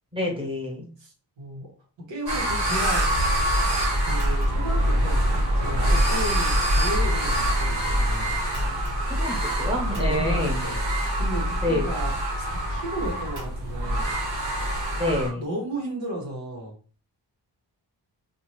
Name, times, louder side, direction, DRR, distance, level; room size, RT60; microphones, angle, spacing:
voice 1, 0.1-0.9 8.7-10.6 11.6-11.9 14.9-15.4, left 1 dB, 10° right, -1 dB, 1.2 m, -28 dB
voice 2, 1.0-1.7 2.1-3.0 4.0-8.3 9.9-14.2 15.3-16.7, equal, 85° right, -1 dB, 1.3 m, -34 dB
sound 1, 2.3-15.3, equal, 65° right, 1.6 m, -24 dB
2.7 x 2.5 x 3.1 m, 0.38 s
cardioid pair, 75°, 44 cm